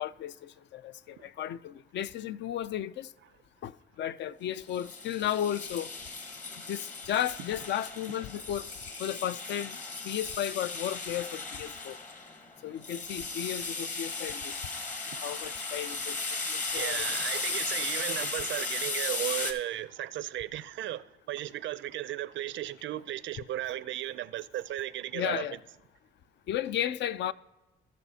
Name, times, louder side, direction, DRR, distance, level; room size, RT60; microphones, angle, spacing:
voice 1, 0.0-3.1 3.6-5.9 6.7-8.7 9.0-9.8 10.0-12.0 12.6-14.5 15.2-16.2 16.5-17.1 25.1-25.6 26.5-27.3, left 11 dB, 65° left, 0.4 m, -34 dB
sound 1, 4.7-19.5, left 3 dB, 40° left, 1.3 m, -36 dB
voice 2, 16.7-25.5, right 13 dB, 70° right, 0.5 m, -35 dB
18.0 x 6.1 x 2.8 m
cardioid pair, 90°, 20 cm